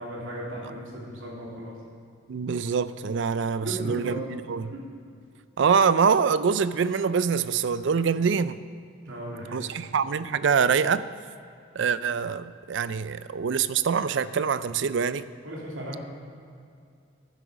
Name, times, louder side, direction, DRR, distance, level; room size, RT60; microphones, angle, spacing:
voice 1, 0.0-1.8 3.6-4.2 4.7-4.8 9.0-9.6 15.4-16.0, right 1 dB, 85° right, -4 dB, 3.0 m, -36 dB
voice 2, 2.3-4.2 4.5-4.7 5.6-8.6 9.5-11.0 11.7-15.2, right 6 dB, 60° right, 15 dB, 0.4 m, -24 dB
11.5 x 10.5 x 5.0 m, 2.4 s
head